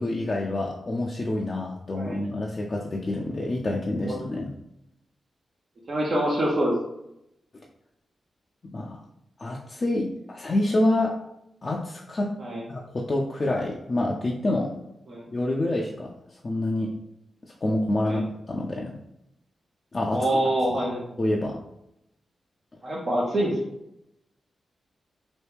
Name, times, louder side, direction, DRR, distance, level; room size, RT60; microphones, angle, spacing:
voice 1, 0.0-4.5 8.6-9.0 9.4-11.2 11.6-12.3 12.7-14.7 15.3-16.1 16.4-16.9 17.6-18.2 18.5-19.0 19.9-20.4 20.7-20.8 21.2-21.6, left 1 dB, 45° left, -2 dB, 0.5 m, -27 dB
voice 2, 5.9-6.7 12.4-12.6 15.1-15.3 18.0-18.2 20.1-21.0 22.8-23.7, right 1 dB, 60° right, -4 dB, 0.7 m, -25 dB
3.0 x 2.3 x 3.4 m, 0.82 s
supercardioid pair, 45°, 0 cm